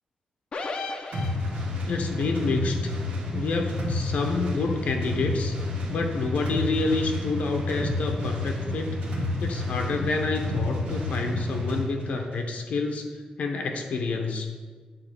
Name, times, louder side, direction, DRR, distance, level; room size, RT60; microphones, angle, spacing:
sound 1, 0.5-1.9, left 3 dB, 45° left, 0.7 m, -34 dB
sound 2, 1.1-11.9, left 2 dB, 70° right, 1.8 m, -30 dB
voice 1, 1.9-2.8 3.3-5.6 5.9-9.0 9.4-13.1 13.4-14.5, left 3 dB, 80° left, 3 dB, 1.0 m, -28 dB
8.6 x 4.0 x 6.8 m, 1.5 s
wide cardioid pair, 155°, 2 cm